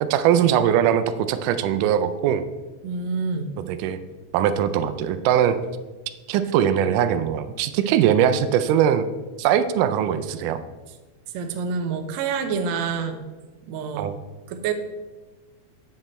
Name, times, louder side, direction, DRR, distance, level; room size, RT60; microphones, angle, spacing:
voice 1, 0.0-2.5 3.7-4.0 4.3-5.6 6.3-9.1 9.4-10.6 14.0-14.2, right 9 dB, 90° right, 11 dB, 2.2 m, -21 dB
voice 2, 2.8-3.5 11.3-13.2 13.7-14.1 14.5-14.7, right 5 dB, 70° right, 6 dB, 1.8 m, -27 dB
8.1 x 7.9 x 4.2 m, 1.2 s
omnidirectional pair, 3.6 m